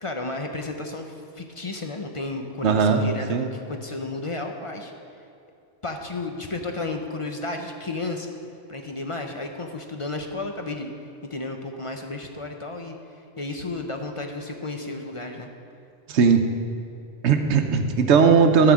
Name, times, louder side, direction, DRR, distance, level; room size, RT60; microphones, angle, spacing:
voice 1, 0.0-4.9 5.8-8.3 8.7-10.9 11.3-13.0 13.4-15.5, left 2 dB, 35° left, 4 dB, 0.5 m, -32 dB
voice 2, 2.6-3.0 3.3-3.5 16.1-16.4 17.2-18.7, right 6 dB, 70° right, 5 dB, 1.0 m, -18 dB
11.5 x 5.0 x 7.2 m, 2.6 s
omnidirectional pair, 1.2 m